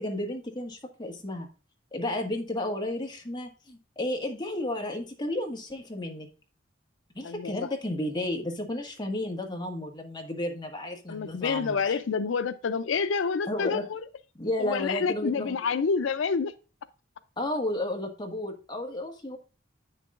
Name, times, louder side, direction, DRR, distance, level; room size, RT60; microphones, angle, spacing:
voice 1, 0.0-1.5 1.9-6.3 7.1-12.0 13.4-13.9 14.4-15.6 17.4-19.4, left 1 dB, 25° left, 1.6 m, -32 dB
voice 2, 7.2-7.7 11.1-14.0 14.6-16.5, left 5 dB, 90° left, 0.5 m, -28 dB
9.0 x 6.6 x 2.5 m
head